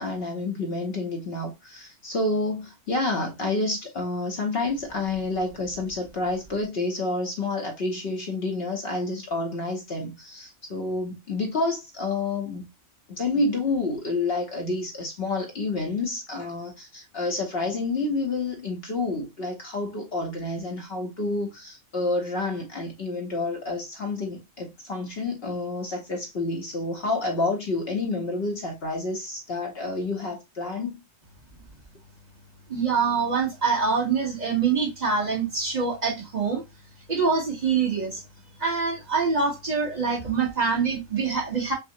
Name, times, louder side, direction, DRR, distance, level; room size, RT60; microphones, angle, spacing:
voice 1, 0.0-12.7 13.2-31.0, left 2 dB, 55° left, 0.9 m, -29 dB
voice 2, 32.7-36.6 37.1-38.2 38.6-41.7, right 5 dB, 35° right, 1.1 m, -25 dB
5.7 x 2.0 x 2.6 m
omnidirectional pair, 1.4 m